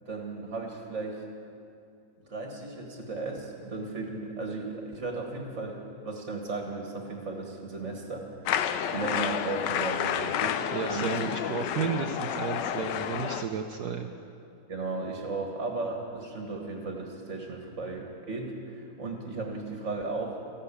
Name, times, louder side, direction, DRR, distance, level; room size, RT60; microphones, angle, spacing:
voice 1, 0.0-1.2 2.2-8.5 8.9-10.6 10.9-11.2 14.7-20.4, right 3 dB, 40° right, 1 dB, 1.8 m, -35 dB
sound 1, 8.5-13.4, left 9 dB, 70° left, 1.2 m, -30 dB
voice 2, 10.7-14.1, right 6 dB, 65° right, 4 dB, 1.1 m, -32 dB
15.0 x 11.0 x 8.4 m, 2.5 s
omnidirectional pair, 2.1 m